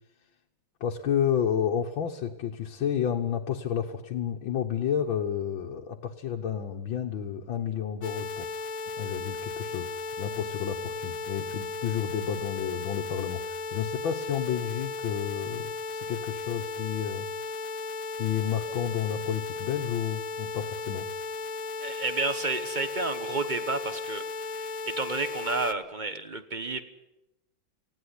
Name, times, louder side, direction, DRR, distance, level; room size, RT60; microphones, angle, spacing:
voice 1, 0.8-8.6 9.0-17.3 18.2-21.1, left 8 dB, 75° left, 1 dB, 1.9 m, -31 dB
sound 1, 8.0-25.7, left 3 dB, 50° left, 1.2 m, -35 dB
voice 2, 21.8-26.8, right 3 dB, 30° right, 10 dB, 0.9 m, -31 dB
19.0 x 16.5 x 9.8 m, 0.95 s
omnidirectional pair, 2.2 m